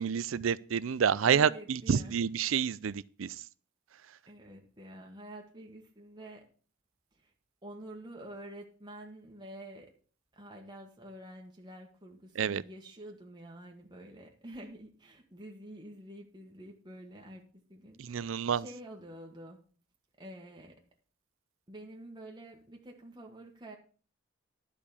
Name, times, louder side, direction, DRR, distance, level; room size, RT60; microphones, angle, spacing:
voice 1, 0.0-3.3 12.4-12.6 18.0-18.6, right 7 dB, 85° right, 0.5 m, -29 dB
voice 2, 1.2-2.1 4.3-6.4 7.2-7.3 7.6-9.9 10.3-19.6 20.2-20.8 21.7-23.8, right 1 dB, 20° right, 1.5 m, -48 dB
11.5 x 5.1 x 7.0 m
head